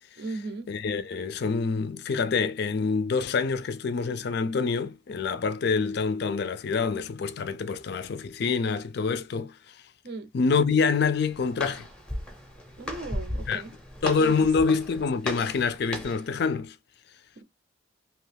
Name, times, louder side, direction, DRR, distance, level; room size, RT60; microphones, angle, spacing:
voice 1, 0.2-0.7 10.0-10.3 12.8-13.7 14.2-14.5 17.4-17.5, right 2 dB, 50° right, 0.5 m, -37 dB
voice 2, 0.7-9.8 10.3-11.9 13.5-13.6 14.0-16.8, left 5 dB, 50° left, 0.4 m, -26 dB
Walk footsteps, 10.9-16.3, equal, 5° left, 0.6 m, -37 dB
2.8 x 2.3 x 3.2 m
head